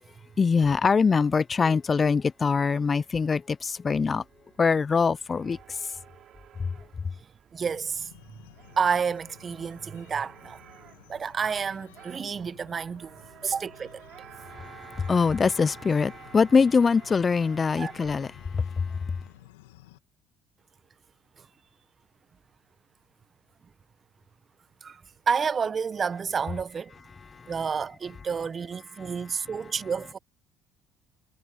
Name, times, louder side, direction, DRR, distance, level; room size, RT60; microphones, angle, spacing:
voice 1, 0.4-4.2 4.6-5.9 6.6-6.7 14.5-19.2 27.3-27.5 29.0-29.1, left 5 dB, 35° left, 0.4 m, -24 dB
sound 1, 4.1-18.5, right 10 dB, 55° right, 4.3 m, -52 dB
voice 2, 7.5-8.4 8.8-10.6 11.1-14.0 17.8-17.9 21.4-21.5 24.8-26.9 27.5-30.2, right 6 dB, 40° right, 0.9 m, -30 dB
sound 2, 7.7-20.0, left 16 dB, 85° left, 2.1 m, -54 dB
hypercardioid pair, 60°, 0 cm